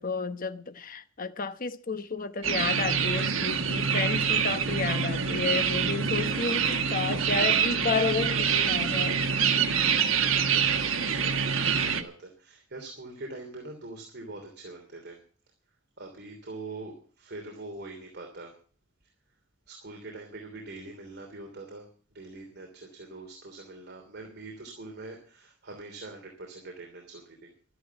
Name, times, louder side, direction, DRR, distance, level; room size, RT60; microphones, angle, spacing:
voice 1, 0.0-9.2, left 4 dB, 45° left, 1.0 m, -31 dB
sound 1, 2.4-12.0, right 6 dB, 70° right, 1.4 m, -26 dB
voice 2, 9.4-15.2 16.0-18.5 19.0-19.1 19.7-27.5, right 2 dB, 55° right, 3.1 m, -44 dB
13.0 x 11.0 x 7.0 m
head